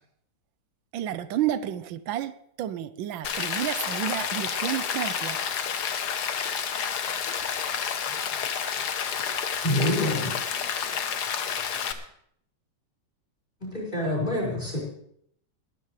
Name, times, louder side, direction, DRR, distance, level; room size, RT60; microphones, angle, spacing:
voice 1, 0.9-5.4, right 11 dB, 90° right, 1.5 m, -31 dB
Rain, 3.2-11.9, left 7 dB, 60° left, 1.5 m, -30 dB
voice 2, 8.1-8.8 9.6-11.1 11.5-12.0, equal, 10° right, 1.8 m, -52 dB
voice 3, 9.2-10.3 13.6-14.8, left 1 dB, 25° left, 5.3 m, -27 dB
20.5 x 12.5 x 3.2 m
omnidirectional pair, 2.0 m